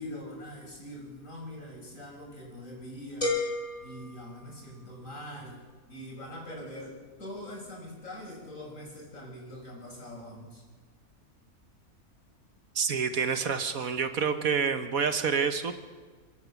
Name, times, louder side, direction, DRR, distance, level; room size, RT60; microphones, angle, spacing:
voice 1, 0.0-3.4 3.8-5.6 5.9-10.6, left 1 dB, 55° left, 0 dB, 6.2 m, -43 dB
sound 1, 3.2-5.1, left 2 dB, 20° left, 4.4 m, -33 dB
voice 2, 12.7-15.7, right 6 dB, 65° right, 9 dB, 1.6 m, -28 dB
28.5 x 11.0 x 8.4 m, 1.4 s
omnidirectional pair, 1.6 m